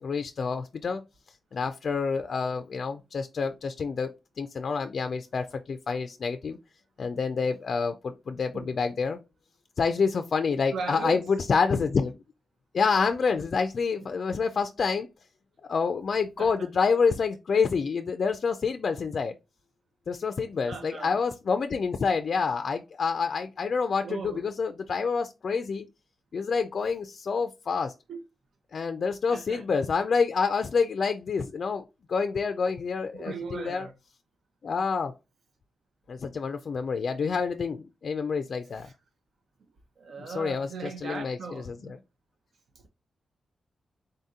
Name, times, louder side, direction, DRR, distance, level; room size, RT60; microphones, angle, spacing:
voice 1, 0.0-1.0 1.5-6.6 7.0-9.2 9.8-12.1 12.7-15.1 15.6-19.4 20.1-25.9 26.3-27.9 28.7-31.8 32.1-33.9 34.6-35.1 36.1-38.9 40.2-42.0, left 5 dB, 55° left, 0.3 m, -28 dB
voice 2, 10.7-11.2 16.4-16.7 20.7-21.1 24.0-24.4 28.1-28.2 29.3-29.6 33.1-33.9 38.7-38.9 40.0-42.0, right 4 dB, 75° right, 0.7 m, -38 dB
3.9 x 2.7 x 3.6 m
wide cardioid pair, 120°, 0 cm